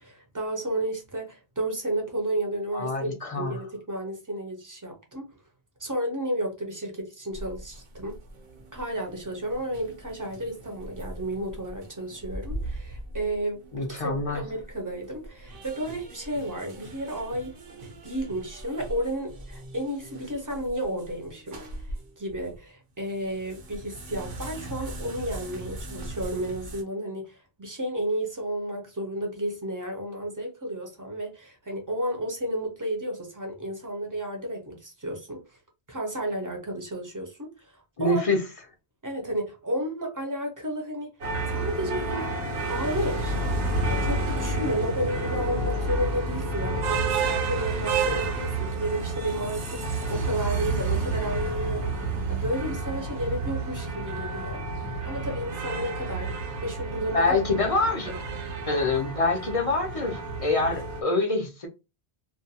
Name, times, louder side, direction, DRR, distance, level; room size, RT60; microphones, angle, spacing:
voice 1, 0.0-5.3 5.8-8.2 8.7-17.5 17.8-21.6 21.8-35.6 35.9-38.2 39.0-41.1 41.5-42.3 42.7-43.5 43.9-52.0 52.3-54.6 55.0-56.3 56.6-57.2 58.0-58.2 58.9-59.1, right 1 dB, 25° right, 0.5 m, -32 dB
voice 2, 2.7-3.6 13.7-14.4 38.0-38.4 57.1-58.1 58.7-61.7, left 3 dB, 40° left, 0.5 m, -25 dB
sound 1, 7.3-22.6 23.0-26.8, right 1 dB, 60° right, 0.8 m, -41 dB
sound 2, 41.2-61.0, right 3 dB, 85° right, 1.0 m, -30 dB
2.5 x 2.2 x 2.7 m
omnidirectional pair, 1.1 m